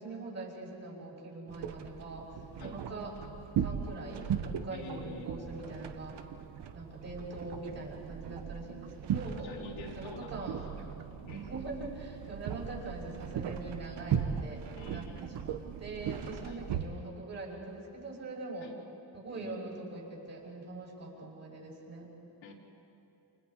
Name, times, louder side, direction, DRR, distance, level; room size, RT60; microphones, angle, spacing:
voice 1, 0.0-2.3 2.6-3.1 3.6-6.1 6.7-9.5 9.9-10.7 11.3-14.6 14.9-18.7 19.1-22.1, right 2 dB, 35° right, -4 dB, 6.4 m, -43 dB
sound 1, 1.5-16.9, right 8 dB, 65° right, 1.2 m, -38 dB
voice 2, 4.7-5.3 9.4-10.5 11.2-11.7 14.7-15.2 16.4-16.6 18.6-18.7 19.3-19.8 22.4-22.5, left 2 dB, 80° left, -4 dB, 4.8 m, -46 dB
30.0 x 29.0 x 4.8 m, 2.9 s
cardioid pair, 165°, 45 cm